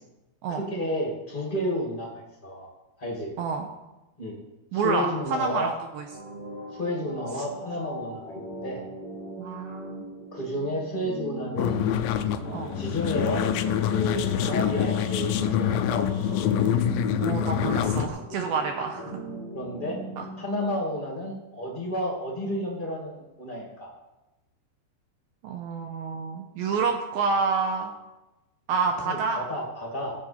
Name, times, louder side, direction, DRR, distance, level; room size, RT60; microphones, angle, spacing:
voice 1, 0.5-2.7 3.0-3.3 4.2-4.3 4.7-5.7 6.7-8.8 10.3-11.8 12.4-13.5 13.8-16.1 18.3-18.4 19.5-20.0 20.4-23.9 28.9-30.1, left 1 dB, 25° left, -2 dB, 1.0 m, -31 dB
voice 2, 4.7-6.0 9.4-10.1 12.5-12.7 14.5-14.6 17.2-19.2 20.2-20.3 25.4-27.9 28.7-29.4, right 5 dB, 75° right, 4 dB, 2.4 m, -28 dB
sound 1, 6.1-20.3, right 1 dB, 35° right, 3.9 m, -40 dB
sound 2, 11.6-18.1, left 9 dB, 85° left, 2.0 m, -26 dB
Wind instrument woodwind instrument, 13.0-17.2, left 11 dB, 20° right, 1.7 m, -35 dB
15.5 x 7.7 x 4.4 m, 1.0 s
omnidirectional pair, 4.7 m